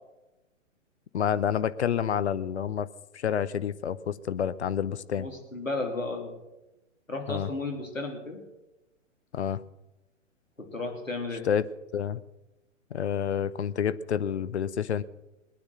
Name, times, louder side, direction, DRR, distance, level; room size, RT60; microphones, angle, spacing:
voice 1, 1.1-2.9 3.1-5.3 7.3-7.5 9.3-9.6 11.4-11.6 11.9-12.2 12.9-15.0, left 8 dB, 60° left, 15 dB, 0.8 m, -28 dB
voice 2, 5.2-6.3 7.1-8.4 10.7-11.4, left 2 dB, 85° left, 3 dB, 3.3 m, -33 dB
20.5 x 9.8 x 6.4 m, 0.99 s
figure-of-eight pair, 120°, 39 cm